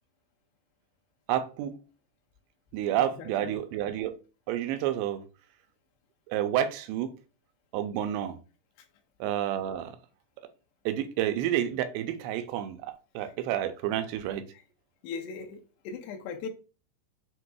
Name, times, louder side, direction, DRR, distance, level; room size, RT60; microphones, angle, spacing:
voice 1, 1.3-1.7 2.7-4.1 4.5-5.2 6.3-7.1 7.7-8.4 9.2-9.9 10.9-12.8 13.2-14.4, right 11 dB, 85° right, 2.7 m, -29 dB
voice 2, 2.9-3.6 14.5-14.6 15.0-16.5, left 5 dB, 85° left, 2.8 m, -39 dB
7.5 x 2.6 x 2.3 m
omnidirectional pair, 4.8 m